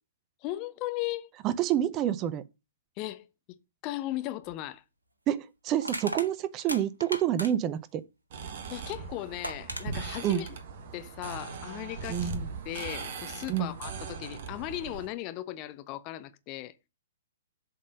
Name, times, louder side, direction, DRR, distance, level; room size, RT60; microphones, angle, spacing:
voice 1, 0.4-1.3 3.0-3.3 3.8-4.8 8.7-10.5 10.9-12.3 12.6-16.7, left 15 dB, 30° left, 0.7 m, -37 dB
voice 2, 1.4-2.4 5.3-8.0 10.2-10.4 12.1-12.5 13.5-13.7, right 11 dB, 25° right, 0.6 m, -28 dB
Crushing, 4.4-4.6 5.8-7.8 9.0-9.1 9.4-9.9, right 1 dB, 80° right, 1.3 m, -36 dB
sound 1, 8.3-15.1, right 5 dB, 45° right, 1.3 m, -39 dB
7.4 x 4.1 x 6.3 m
figure-of-eight pair, 115°, 0 cm